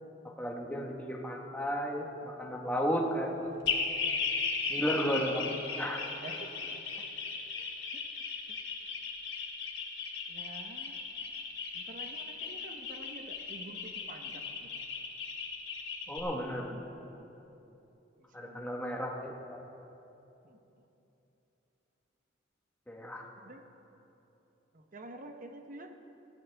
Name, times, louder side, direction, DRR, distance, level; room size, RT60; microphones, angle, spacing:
voice 1, 0.2-3.5 4.7-5.5 5.8-6.0 16.1-16.8 18.3-19.6 22.9-23.3, equal, 10° left, -1 dB, 1.5 m, -34 dB
sound 1, 3.6-16.2, left 5 dB, 85° left, 3.0 m, -36 dB
voice 2, 4.7-5.2 6.2-6.8 7.6-7.7 10.3-10.9 11.7-14.8 16.8-16.9 18.2-18.6 20.4-20.6 23.4-23.6 24.7-25.9, right 2 dB, 45° right, 5 dB, 1.1 m, -48 dB
19.5 x 15.0 x 3.5 m, 3.0 s
head